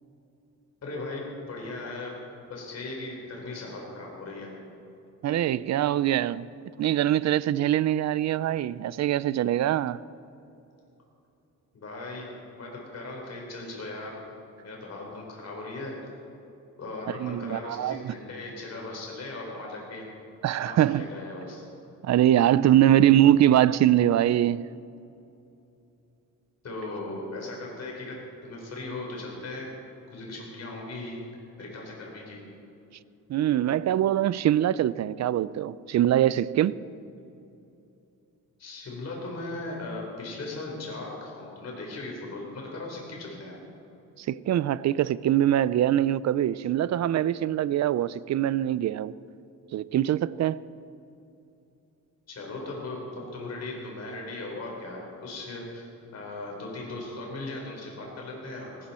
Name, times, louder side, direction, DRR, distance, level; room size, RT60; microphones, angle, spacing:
voice 1, 0.8-2.2 2.5-4.5 11.7-14.3 14.6-16.0 16.8-20.1 20.5-21.6 26.6-29.7 30.1-31.2 31.6-32.4 38.6-43.6 52.3-55.9 56.1-58.9, left 2 dB, 50° left, 4.2 m, -38 dB
voice 2, 5.2-6.5 6.8-10.0 17.2-18.2 20.4-21.1 22.0-24.6 33.3-36.8 44.2-49.1 49.7-50.6, right 12 dB, 55° right, 0.5 m, -23 dB
18.5 x 17.0 x 4.3 m
cardioid pair, 135°, 33 cm